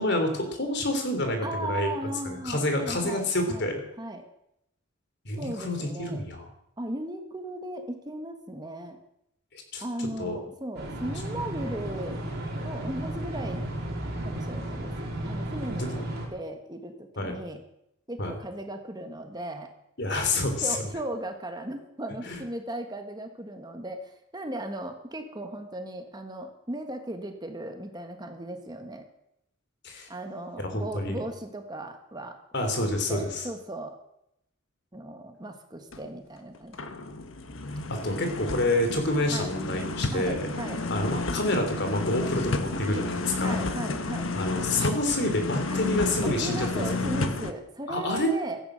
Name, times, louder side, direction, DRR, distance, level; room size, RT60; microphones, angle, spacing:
voice 1, 0.0-1.9 2.2-3.8 5.2-6.5 9.7-9.8 10.2-10.4 15.8-16.0 17.2-17.4 18.2-18.3 20.0-20.8 22.2-22.4 29.8-30.1 30.6-31.2 32.5-33.4 37.9-40.5 40.9-43.6 44.3-46.8 47.9-48.3, left 1 dB, 55° left, 5 dB, 3.5 m, -28 dB
voice 2, 1.4-3.7 4.0-4.2 5.4-6.2 6.8-9.0 9.8-12.2 12.6-13.6 14.2-14.9 15.2-16.0 16.3-17.6 18.1-19.7 20.6-29.1 30.1-34.0 34.9-36.9 39.3-39.5 40.1-40.8 43.4-44.3 45.7-45.8 46.2-48.6, right 1 dB, 20° right, 6 dB, 1.5 m, -37 dB
sound 1, 10.8-16.3, right 1 dB, 50° right, 4.6 m, -34 dB
sound 2, 35.9-36.1 36.5-47.5, left 2 dB, 70° left, 1.4 m, -31 dB
16.5 x 14.0 x 6.5 m, 0.80 s
head